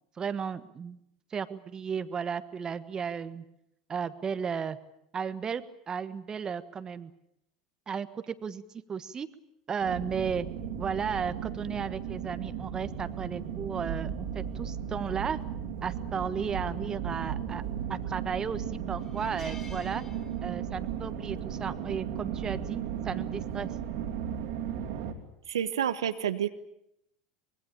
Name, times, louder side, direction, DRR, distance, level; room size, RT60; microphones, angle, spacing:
voice 1, 0.2-1.0 1.3-3.4 3.9-4.8 5.1-7.1 7.9-8.6 8.9-9.3 9.7-10.5 10.8-15.4 15.8-17.6 17.9-20.0 20.4-23.7, right 6 dB, 30° right, 12 dB, 1.4 m, -34 dB
sound 1, 9.8-25.1, right 8 dB, 60° right, 3.0 m, -35 dB
sound 2, 17.8-18.1 18.5-18.6 19.0-20.8 21.1-21.3 22.6-22.9, left 3 dB, 20° left, 3.8 m, -52 dB
voice 2, 25.5-26.5, right 9 dB, 80° right, 10 dB, 1.2 m, -29 dB
24.5 x 21.5 x 8.7 m, 0.80 s
hypercardioid pair, 80°, 3 cm